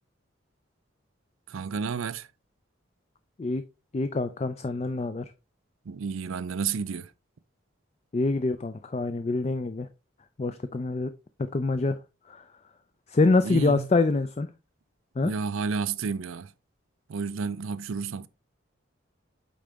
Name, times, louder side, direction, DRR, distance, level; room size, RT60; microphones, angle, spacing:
voice 1, 1.5-2.3 5.9-7.1 13.4-13.9 15.2-16.5 17.1-18.3, right 5 dB, 90° right, 0.5 m, -31 dB
voice 2, 3.9-5.2 8.1-9.9 10.4-11.1 11.5-12.0 13.1-14.5 15.2-15.3, left 3 dB, 30° left, 0.4 m, -25 dB
8.5 x 3.8 x 3.4 m
head